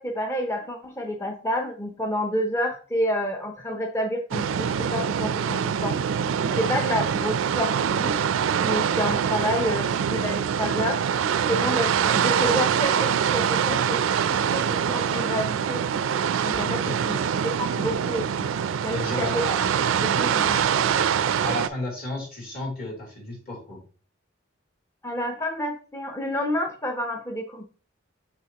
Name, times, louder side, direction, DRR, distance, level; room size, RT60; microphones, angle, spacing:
voice 1, 0.0-6.0 6.4-8.2 8.6-11.0 11.5-15.8 16.4-17.2 17.6-19.5 20.0-20.7 25.0-27.6, equal, 15° left, 2 dB, 0.5 m, -29 dB
sound 1, 4.3-21.7, right 8 dB, 80° right, 0.4 m, -24 dB
voice 2, 16.6-17.0 18.9-19.6 21.4-23.8, left 1 dB, 50° left, -2 dB, 2.9 m, -33 dB
6.1 x 5.7 x 2.9 m, 0.40 s
head